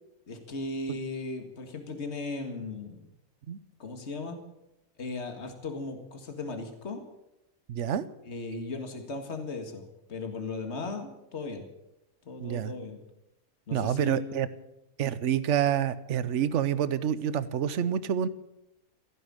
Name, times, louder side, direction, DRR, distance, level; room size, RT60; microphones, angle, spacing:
voice 1, 0.3-3.1 3.8-4.4 5.0-7.0 8.2-11.6 12.3-13.0 13.7-14.6, left 3 dB, 50° left, 5 dB, 2.2 m, -37 dB
voice 2, 7.7-8.1 12.4-12.7 13.7-14.5 15.0-18.3, right 9 dB, 60° right, 15 dB, 1.1 m, -27 dB
15.5 x 10.0 x 8.8 m, 0.88 s
omnidirectional pair, 1.5 m